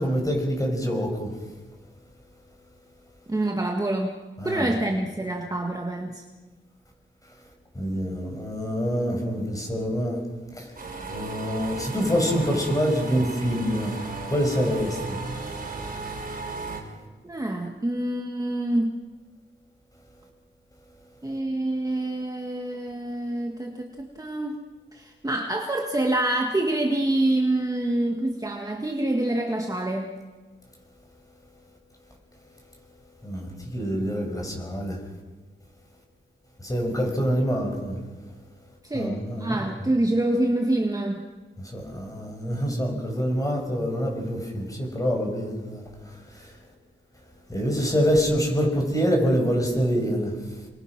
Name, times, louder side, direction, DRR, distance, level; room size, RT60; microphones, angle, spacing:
voice 1, 0.0-1.4 4.4-4.7 7.7-10.2 10.5-10.7 11.1-14.0 14.3-15.2 33.2-35.0 36.6-38.0 38.9-39.6 41.6-46.6 47.5-50.4, equal, 15° left, 2 dB, 6.0 m, -26 dB
voice 2, 3.3-6.2 17.2-19.0 21.2-24.6 24.9-30.1 38.8-41.3, right 1 dB, 15° right, 2 dB, 1.7 m, -26 dB
sound 1, 10.8-16.8, right 3 dB, 40° right, 5.0 m, -35 dB
29.0 x 23.0 x 6.0 m, 1.3 s
wide cardioid pair, 145°, 21 cm